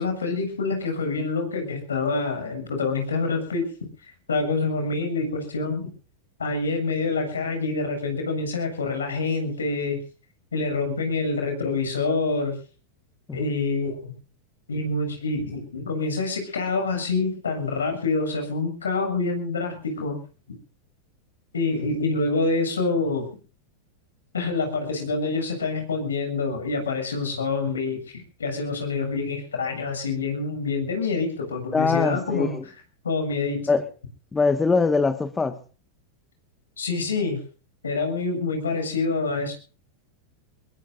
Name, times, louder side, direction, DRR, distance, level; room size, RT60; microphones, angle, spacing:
voice 1, 0.0-3.7 4.3-5.9 6.4-10.0 10.5-12.6 13.3-14.1 14.7-20.2 21.5-23.3 24.3-32.5 33.0-33.7 36.8-37.4 37.8-39.5, left 3 dB, 90° left, 7.5 m, -26 dB
voice 2, 31.7-32.6 33.7-33.9 34.3-35.6, left 4 dB, 15° left, 1.6 m, -22 dB
23.5 x 22.0 x 2.6 m
hypercardioid pair, 100°, 0 cm